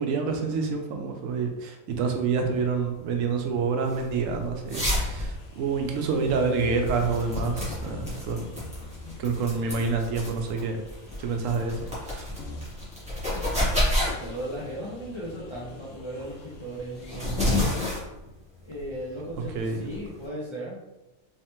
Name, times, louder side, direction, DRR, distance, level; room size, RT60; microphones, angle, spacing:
voice 1, 0.0-8.5 9.2-10.8 11.2-12.3 19.5-19.8, right 5 dB, 75° right, 4 dB, 0.9 m, -27 dB
sound 1, 2.0-20.2, left 1 dB, 5° right, 1.2 m, -31 dB
sound 2, 4.9-17.6, left 2 dB, 70° left, 1.0 m, -43 dB
voice 2, 14.0-17.9 18.7-20.8, right 1 dB, 45° left, -6 dB, 0.4 m, -37 dB
3.2 x 3.2 x 2.9 m, 1.0 s
omnidirectional pair, 1.4 m